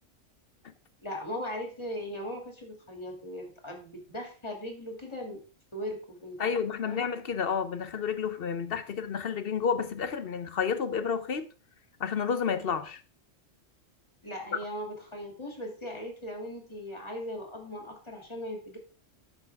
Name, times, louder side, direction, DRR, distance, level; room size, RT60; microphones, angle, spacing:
voice 1, 1.0-5.4 5.7-6.6 6.8-7.0 14.2-18.8, equal, 20° left, 2.6 m, -38 dB
voice 2, 6.4-11.5 12.0-13.0, left 6 dB, 55° left, 0.9 m, -30 dB
11.0 x 7.2 x 3.5 m
omnidirectional pair, 1.3 m